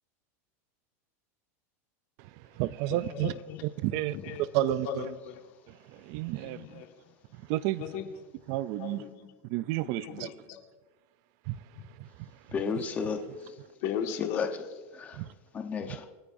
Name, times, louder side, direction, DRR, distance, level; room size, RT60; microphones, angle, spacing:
voice 1, 2.2-3.3 3.6-5.0 5.7-6.8 7.3-7.8 8.5-9.0 9.4-10.3 11.5-11.6 12.0-12.4 15.1-15.3, right 16 dB, 45° right, 0.3 m, -32 dB
voice 2, 2.9-3.6 3.9-5.5 6.2-7.1 7.8-8.1 8.8-9.3 9.8-10.6 11.8-11.9 13.0-13.1 13.8-14.8, left 8 dB, 50° left, 1.6 m, -38 dB
voice 3, 12.5-13.6 14.2-14.5 14.9-15.3 15.5-16.1, left 5 dB, 20° left, 0.9 m, -33 dB
27.5 x 9.9 x 2.6 m
supercardioid pair, 165°, 8 cm